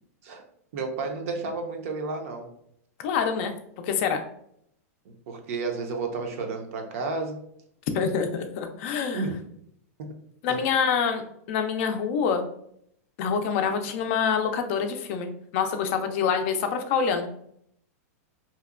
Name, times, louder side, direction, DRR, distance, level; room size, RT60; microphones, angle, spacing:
voice 1, 0.7-2.5 5.3-7.4 9.1-9.4 10.0-10.1 10.5-10.6, right 3 dB, 60° right, 4 dB, 0.5 m, -31 dB
voice 2, 3.0-3.5 3.8-4.2 7.9-9.2 10.4-11.2 11.5-12.5 13.2-17.3, left 6 dB, 50° left, 6 dB, 0.4 m, -26 dB
2.8 x 2.1 x 2.4 m, 0.70 s
supercardioid pair, 145°, 8 cm